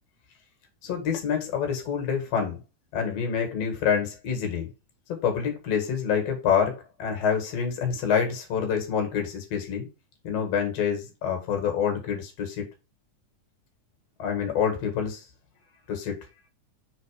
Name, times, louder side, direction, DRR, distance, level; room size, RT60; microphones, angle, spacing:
voice 1, 0.8-2.6 2.9-4.7 5.2-9.9 10.2-12.7 14.2-15.2 15.9-16.2, left 7 dB, 55° left, 2.6 m, -27 dB
4.8 x 4.2 x 4.9 m
omnidirectional pair, 3.8 m